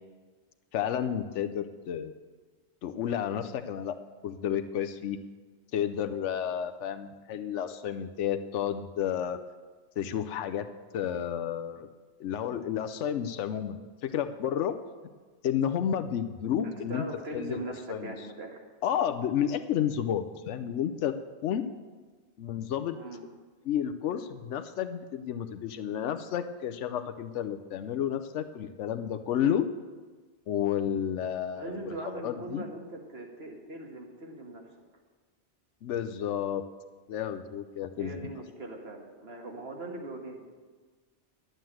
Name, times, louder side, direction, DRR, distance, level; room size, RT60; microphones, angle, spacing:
voice 1, 0.7-2.1 2.8-3.9 4.2-5.2 5.7-9.4 10.0-10.7 10.9-11.9 12.2-14.8 15.4-17.0 17.3-17.6 17.9-18.1 18.8-21.1 21.4-21.6 22.4-23.0 23.7-29.7 30.5-32.6 35.8-36.6 37.1-38.3, left 9 dB, 90° left, 10 dB, 1.0 m, -31 dB
voice 2, 16.6-18.6 23.0-23.2 31.5-34.7 38.0-40.5, right 2 dB, 60° right, 1 dB, 1.9 m, -40 dB
11.5 x 7.9 x 7.6 m, 1.4 s
omnidirectional pair, 1.2 m